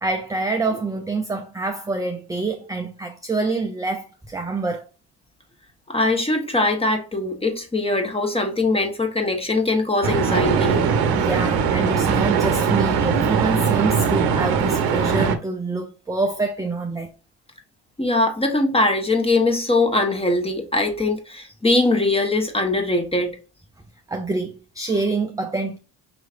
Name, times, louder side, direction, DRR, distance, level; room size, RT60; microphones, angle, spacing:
voice 1, 0.0-4.9 11.1-17.1 24.1-25.8, right 3 dB, 10° right, 0.5 m, -26 dB
voice 2, 5.9-10.8 18.0-23.3, left 2 dB, 15° left, 1.2 m, -21 dB
sound 1, 10.0-15.4, right 6 dB, 65° right, 0.8 m, -20 dB
5.8 x 3.1 x 2.5 m
cardioid pair, 80°, 39 cm